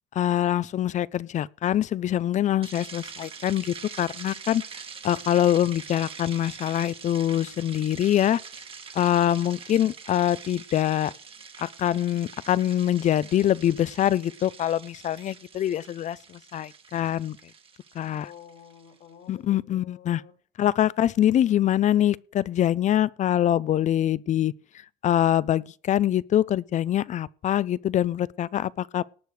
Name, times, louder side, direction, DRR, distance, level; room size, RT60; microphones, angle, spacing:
voice 1, 0.1-4.6 5.0-8.4 8.9-11.1 11.6-17.4 18.0-18.3 19.3-20.2 20.6-24.5 25.0-29.0, left 11 dB, 45° left, 0.4 m, -24 dB
sound 1, 2.6-18.9, right 5 dB, 35° right, 1.3 m, -44 dB
voice 2, 9.2-9.6 18.2-20.3, left 9 dB, 70° left, 3.6 m, -49 dB
18.5 x 6.3 x 4.8 m
cardioid pair, 110°, 17 cm